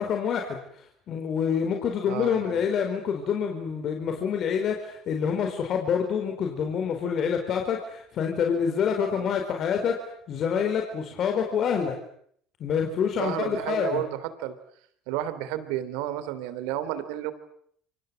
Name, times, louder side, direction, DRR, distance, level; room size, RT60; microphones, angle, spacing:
voice 1, 0.0-9.9 10.3-12.0 12.6-14.0, left 7 dB, 50° left, 4 dB, 4.5 m, -27 dB
voice 2, 2.1-2.6 9.1-9.3 13.2-14.5 15.1-17.3, right 12 dB, 80° right, 14 dB, 3.2 m, -32 dB
30.0 x 25.0 x 7.8 m, 0.66 s
supercardioid pair, 90°, 0 cm